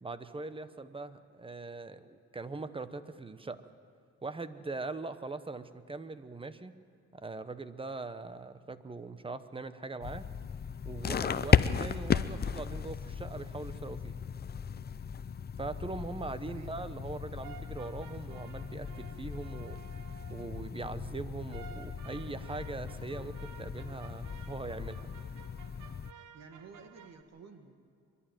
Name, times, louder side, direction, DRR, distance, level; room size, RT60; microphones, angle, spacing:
voice 1, 0.0-3.6 4.2-6.8 7.1-10.3 10.8-14.3 15.6-19.8 20.3-25.1, right 3 dB, 20° right, 12 dB, 1.0 m, -41 dB
sound 1, 10.0-26.1, left 7 dB, 35° left, 0.6 m, -35 dB
voice 2, 16.5-16.8 26.3-27.7, right 5 dB, 60° right, 6 dB, 1.7 m, -52 dB
sound 2, 17.4-20.7 21.5-27.2, right 8 dB, 85° right, 1.1 m, -53 dB
25.0 x 11.5 x 9.1 m, 2.3 s
cardioid pair, 90°, 30 cm